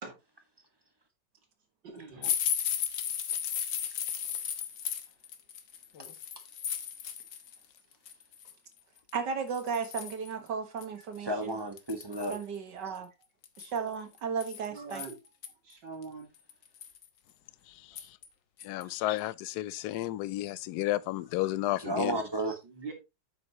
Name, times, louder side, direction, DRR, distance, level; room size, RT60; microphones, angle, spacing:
voice 1, 1.8-2.4 14.7-15.2 15.6-16.3 18.8-18.9 22.6-22.9, right 4 dB, 90° right, 3.4 m, -43 dB
sound 1, 2.2-7.6 7.9-8.5 9.1-9.2 9.5-10.3 10.8-10.9 11.2-11.3 11.8-12.4 13.4-15.5 16.0-16.1 16.5-17.1 18.0-18.3 18.6-18.8 19.2-19.3, left 9 dB, 90° left, 1.8 m, -35 dB
voice 2, 9.1-11.6 12.3-13.1 13.6-15.0, right 6 dB, 75° right, 2.1 m, -35 dB
voice 3, 11.2-12.3 21.8-22.6, right 1 dB, 15° right, 1.3 m, -33 dB
voice 4, 17.7-18.2 18.6-22.2, left 15 dB, 70° left, 1.1 m, -32 dB
8.8 x 7.9 x 3.0 m
omnidirectional pair, 1.9 m